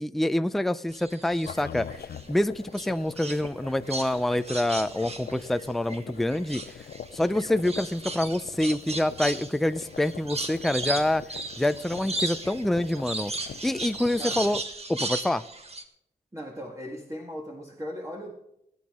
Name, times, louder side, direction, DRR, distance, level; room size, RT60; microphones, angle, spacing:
voice 1, 0.0-2.0 2.3-6.8 7.1-11.2 11.6-13.3 13.6-14.6 14.9-15.4, left 1 dB, ahead, 12 dB, 0.4 m, -26 dB
sound 1, 0.9-2.3 2.7-6.0 6.3-15.8, right 2 dB, 40° right, 1.6 m, -36 dB
sound 2, 1.5-14.6, left 8 dB, 70° left, 0.5 m, -43 dB
voice 2, 14.2-14.5 16.3-18.3, equal, 20° right, 0 dB, 1.8 m, -38 dB
19.0 x 9.5 x 3.7 m, 0.78 s
cardioid pair, 80°, 17 cm